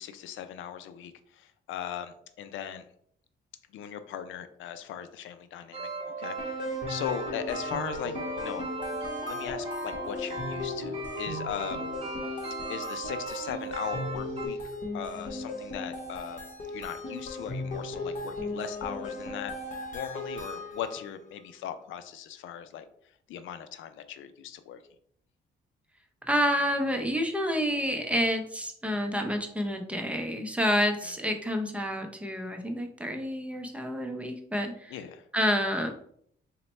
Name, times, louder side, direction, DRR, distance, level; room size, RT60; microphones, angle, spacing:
voice 1, 0.0-2.9 3.7-8.7 9.3-11.9 12.2-16.4 16.7-22.8 23.3-24.8 31.0-31.1 34.9-35.3, left 9 dB, 80° left, 10 dB, 0.4 m, -39 dB
sound 1, 5.7-14.5, right 2 dB, 30° right, 0.9 m, -36 dB
sound 2, 6.4-21.1, left 2 dB, 40° left, 1.0 m, -37 dB
voice 2, 26.3-34.9 35.3-35.9, equal, 5° right, 4 dB, 0.6 m, -29 dB
3.9 x 2.2 x 4.2 m, 0.67 s
cardioid pair, 90°, 20 cm